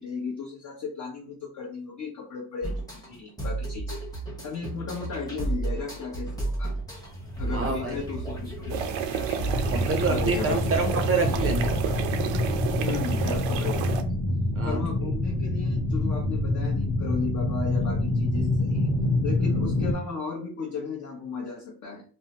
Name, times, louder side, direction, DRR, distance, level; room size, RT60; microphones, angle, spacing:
voice 1, 0.0-4.0 4.4-6.7 7.4-8.9 10.1-10.8 12.8-14.2 14.6-18.9 19.2-22.0, left 5 dB, 40° left, -2 dB, 0.7 m, -35 dB
sound 1, 2.6-12.1, right 2 dB, 10° left, 0.9 m, -33 dB
sound 2, 6.8-19.9, left 1 dB, 90° left, 0.8 m, -27 dB
voice 2, 7.5-7.9 9.7-11.7 14.5-14.8, right 3 dB, 30° right, 4 dB, 0.5 m, -27 dB
sound 3, 8.7-14.0, right 8 dB, 85° right, 0.5 m, -31 dB
2.7 x 2.1 x 2.8 m, 0.41 s
cardioid pair, 100°, 45 cm